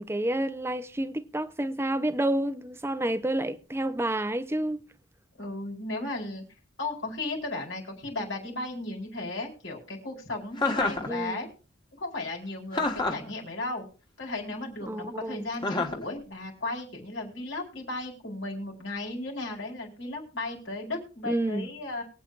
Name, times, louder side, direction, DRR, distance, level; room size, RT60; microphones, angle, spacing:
voice 1, 0.0-4.8 11.1-11.5 13.1-13.2 14.9-15.5 21.2-21.7, right 1 dB, 15° right, 0.6 m, -29 dB
voice 2, 5.4-6.4 6.8-11.5 12.0-13.8 14.2-22.0, left 2 dB, 85° left, 4.5 m, -35 dB
Chuckle chortle, 10.6-11.1 12.7-13.3 15.6-16.0, left 2 dB, 25° left, 1.4 m, -27 dB
23.0 x 8.5 x 2.5 m
head